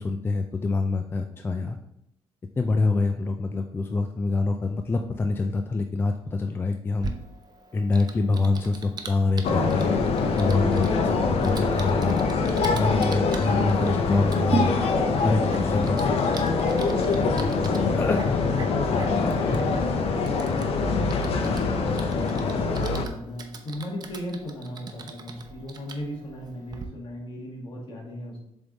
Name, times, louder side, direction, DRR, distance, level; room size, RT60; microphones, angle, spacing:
voice 1, 0.0-1.8 2.6-7.1 7.7-9.9 10.4-12.2 12.6-14.7 15.2-16.3 18.0-18.4 19.5-19.6, left 3 dB, 20° left, 5 dB, 0.3 m, -26 dB
Typing, 7.0-26.8, right 5 dB, 40° right, 0.7 m, -39 dB
sound 1, 9.4-23.0, left 4 dB, 75° left, 0.7 m, -24 dB
voice 2, 17.1-17.4 18.7-19.9 20.3-28.4, left 1 dB, 55° left, -2 dB, 1.9 m, -36 dB
7.0 x 3.6 x 4.0 m, 0.80 s
cardioid pair, 140°, 10 cm